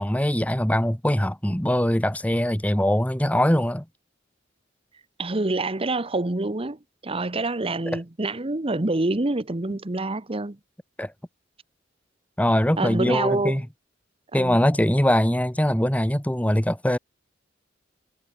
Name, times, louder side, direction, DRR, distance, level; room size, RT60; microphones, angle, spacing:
voice 1, 0.0-3.9 11.0-11.1 12.4-13.7 14.3-17.0, equal, 10° left, 2.0 m, -22 dB
voice 2, 5.2-10.6 12.8-13.6 14.3-14.6, right 2 dB, 30° right, 1.1 m, -26 dB
head